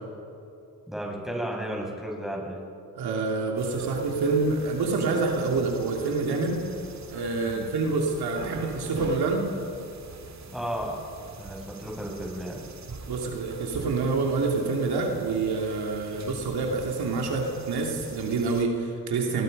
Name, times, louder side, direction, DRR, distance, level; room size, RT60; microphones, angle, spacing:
voice 1, 0.9-2.6 7.4-7.7 10.5-11.0 11.4-12.6, equal, ahead, -2 dB, 7.0 m, -33 dB
voice 2, 2.9-6.6 7.1-9.5 13.1-19.4, right 3 dB, 85° right, 0 dB, 2.8 m, -27 dB
sound 1, 3.6-18.6, right 4 dB, 45° right, 2.2 m, -43 dB
26.0 x 21.0 x 5.4 m, 2.5 s
cardioid pair, 60°, 37 cm